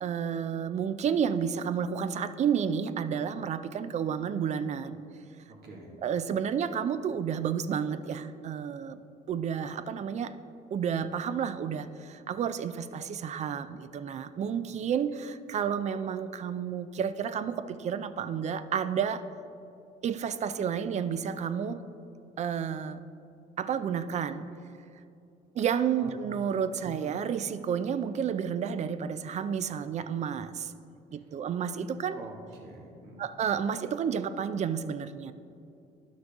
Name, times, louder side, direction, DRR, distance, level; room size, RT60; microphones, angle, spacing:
voice 1, 0.0-5.0 6.0-9.0 9.3-10.3 10.7-19.2 20.0-21.8 22.4-23.0 23.6-24.5 25.6-30.7 31.1-32.2 33.2-35.3, right 7 dB, 45° right, 13 dB, 0.4 m, -31 dB
voice 2, 5.5-5.9 26.0-26.1 26.8-27.0 32.0-33.2, right 2 dB, 70° right, -1 dB, 1.8 m, -46 dB
11.0 x 6.3 x 3.5 m, 2.6 s
cardioid pair, 110°, 17 cm